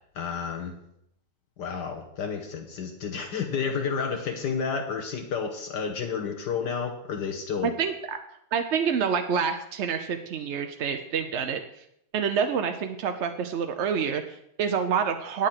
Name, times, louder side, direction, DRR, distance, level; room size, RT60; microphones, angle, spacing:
voice 1, 0.1-0.8 1.6-7.8, left 6 dB, 70° left, 4 dB, 1.6 m, -31 dB
voice 2, 7.6-8.2 8.5-11.6 12.1-15.5, right 7 dB, 60° right, 6 dB, 0.7 m, -27 dB
9.0 x 8.7 x 5.8 m, 0.76 s
omnidirectional pair, 1.9 m